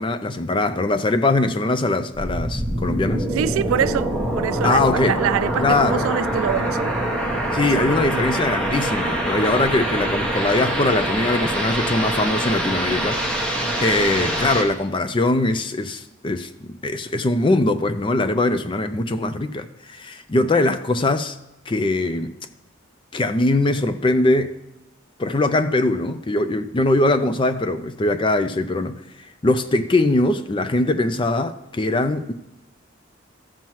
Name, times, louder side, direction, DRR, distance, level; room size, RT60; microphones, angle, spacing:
voice 1, 0.0-3.3 4.6-5.2 5.6-6.1 7.5-13.2 13.8-16.5 16.8-21.4 21.7-22.3 23.1-24.5 25.2-29.0 29.4-32.3, left 2 dB, 25° left, 0.4 m, -21 dB
sound 1, 2.2-14.6, right 1 dB, 5° left, 1.0 m, -24 dB
voice 2, 3.4-7.0 7.6-8.1 9.3-9.4, right 8 dB, 85° right, 0.3 m, -25 dB
14.0 x 7.2 x 3.1 m
head